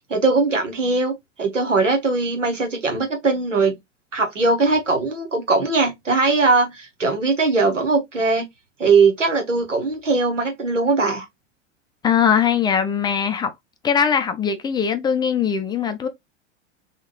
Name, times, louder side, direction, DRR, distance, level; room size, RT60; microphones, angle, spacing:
voice 1, 0.1-3.7 4.1-8.5 8.8-11.3, right 3 dB, 85° right, 1.1 m, -20 dB
voice 2, 12.0-13.5 13.8-16.1, left 7 dB, 10° left, 0.4 m, -20 dB
3.6 x 2.4 x 2.9 m
figure-of-eight pair, 85°, 36 cm